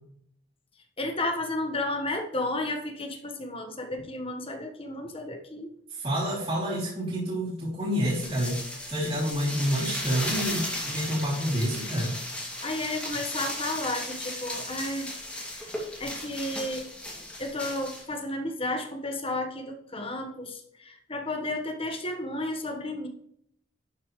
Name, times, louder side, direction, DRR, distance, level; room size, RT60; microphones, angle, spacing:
voice 1, 1.0-5.7 12.6-15.7 16.0-16.9 17.4-23.1, left 1 dB, 30° left, 4 dB, 1.4 m, -32 dB
voice 2, 5.9-12.1, equal, 35° right, -9 dB, 3.2 m, -28 dB
sound 1, 7.9-18.0, left 1 dB, 5° left, 2.4 m, -36 dB
11.5 x 7.0 x 3.2 m, 0.70 s
head